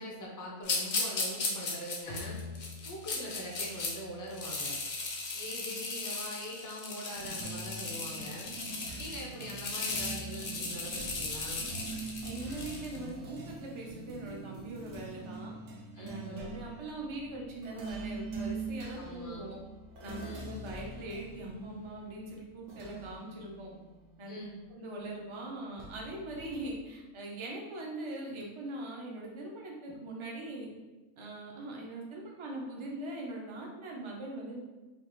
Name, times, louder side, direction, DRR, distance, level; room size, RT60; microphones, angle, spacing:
voice 1, 0.0-2.4 2.9-4.7 5.3-8.5 9.0-11.7 15.9-16.4 18.9-19.5 20.2-20.5 24.3-24.6, equal, 25° left, -2 dB, 0.4 m, -43 dB
sound 1, 0.6-3.9 4.3-13.0, left 3 dB, 50° left, 0.8 m, -36 dB
Bowed string instrument, 2.1-5.5, left 4 dB, 80° left, 1.1 m, -48 dB
sound 2, 7.1-25.0 25.8-26.8, right 3 dB, 65° right, 1.0 m, -44 dB
voice 2, 12.2-15.5 16.0-19.6 20.0-23.7 24.2-24.4 24.7-30.7 31.2-34.6, right 1 dB, 35° right, -1 dB, 0.5 m, -41 dB
5.3 x 2.4 x 3.1 m, 1.2 s
omnidirectional pair, 1.5 m